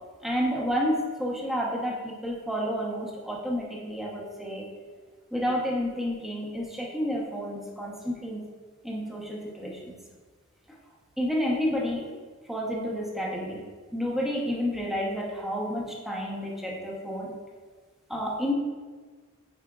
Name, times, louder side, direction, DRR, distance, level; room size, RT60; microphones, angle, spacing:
voice 1, 0.2-4.7 5.3-8.4 8.8-9.9 11.2-12.1 12.5-13.6 13.9-17.3 18.1-18.5, equal, ahead, -3 dB, 0.9 m, -30 dB
8.6 x 4.8 x 2.4 m, 1.4 s
head